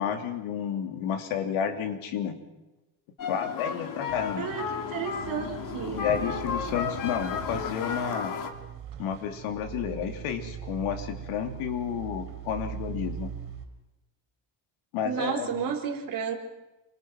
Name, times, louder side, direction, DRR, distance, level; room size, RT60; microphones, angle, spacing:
voice 1, 0.0-2.4 3.3-4.5 5.9-8.3 9.0-13.3 14.9-15.6, left 8 dB, 85° left, 6 dB, 3.4 m, -31 dB
sound 1, 3.2-8.5, left 7 dB, 40° left, 2.4 m, -33 dB
sound 2, 4.1-13.7, right 9 dB, 65° right, 4.8 m, -41 dB
voice 2, 4.4-6.1 15.0-16.3, right 7 dB, 45° right, 3 dB, 4.0 m, -32 dB
28.0 x 25.0 x 6.2 m, 1.0 s
cardioid pair, 175°, 47 cm